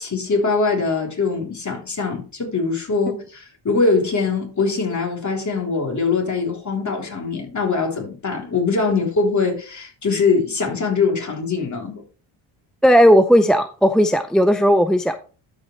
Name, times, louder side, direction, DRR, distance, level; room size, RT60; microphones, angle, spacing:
voice 1, 0.0-12.0, left 4 dB, 35° left, 3.5 m, -22 dB
voice 2, 12.8-15.2, equal, ahead, 0.5 m, -15 dB
12.5 x 5.3 x 3.2 m
cardioid pair, 80°, 50 cm